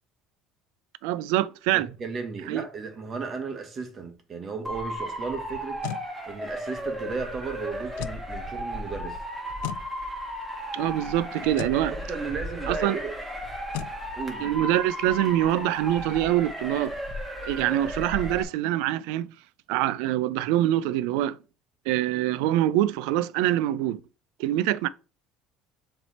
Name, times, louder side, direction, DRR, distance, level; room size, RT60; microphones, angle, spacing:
voice 1, 1.0-1.9 2.5-2.6 10.7-11.9 12.7-13.0 14.4-16.9 17.4-19.3 19.7-21.4 21.9-24.0 24.4-24.9, right 13 dB, 85° right, 0.4 m, -25 dB
voice 2, 1.7-5.8 6.3-9.2 11.6-13.1 14.2-14.5 17.7-17.8, right 4 dB, 35° right, 1.4 m, -35 dB
Motor vehicle (road) / Siren, 4.6-18.4, equal, 10° right, 1.7 m, -35 dB
sound 1, 5.5-6.1 7.9-8.2 9.6-9.9 11.5-11.8 13.7-14.0, left 13 dB, 90° left, 0.4 m, -35 dB
7.1 x 3.3 x 4.2 m
cardioid pair, 125°, 0 cm